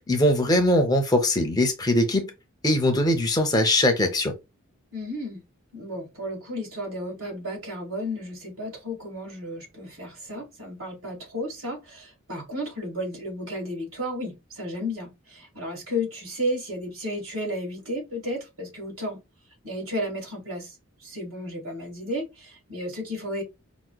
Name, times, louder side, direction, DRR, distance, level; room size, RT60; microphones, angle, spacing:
voice 1, 0.1-2.3 2.6-4.3, left 1 dB, 15° left, 0.5 m, -21 dB
voice 2, 4.9-5.4 5.7-19.2 19.6-23.4, equal, 65° right, 1.8 m, -33 dB
4.8 x 2.0 x 2.2 m
head